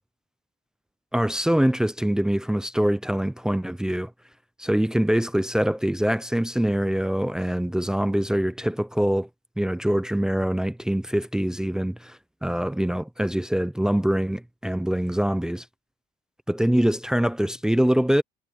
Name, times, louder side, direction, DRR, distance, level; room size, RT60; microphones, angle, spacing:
voice 1, 1.1-4.1 4.6-9.3 9.6-12.0 12.4-15.7 16.5-18.2, equal, 5° right, 0.5 m, -24 dB
cardioid pair, 110°, 17 cm